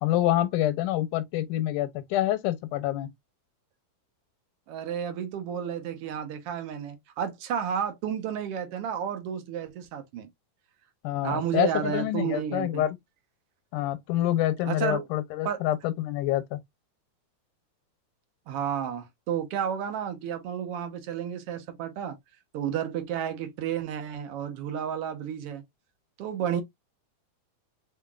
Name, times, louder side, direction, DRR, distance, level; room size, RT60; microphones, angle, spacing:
voice 1, 0.0-3.1 11.0-13.0 13.7-16.6, left 14 dB, 90° left, 2.3 m, -27 dB
voice 2, 4.7-10.3 11.2-12.8 14.7-15.0 15.4-15.6 18.5-22.2 22.5-25.6 26.2-26.6, right 8 dB, 75° right, 1.4 m, -31 dB
5.5 x 2.8 x 2.3 m
omnidirectional pair, 3.6 m